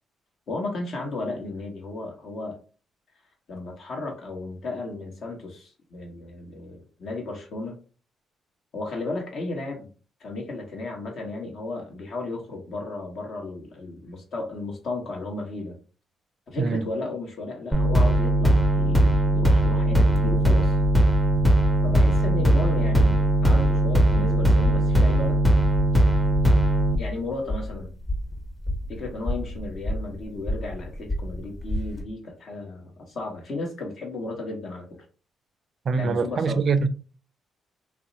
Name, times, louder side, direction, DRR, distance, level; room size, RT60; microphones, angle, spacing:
voice 1, 0.5-2.6 3.5-7.8 8.7-9.9 10.2-15.8 16.5-20.8 21.8-25.4 27.0-27.9 28.9-34.9 35.9-36.6, left 2 dB, 60° left, 1.2 m, -34 dB
voice 2, 16.6-16.9 35.8-36.9, right 5 dB, 50° right, 0.4 m, -24 dB
sound 1, 17.7-27.0, right 1 dB, ahead, 0.6 m, -19 dB
sound 2, 20.1-32.0, equal, 30° left, 1.1 m, -33 dB
2.6 x 2.1 x 3.9 m
cardioid pair, 90°, 0 cm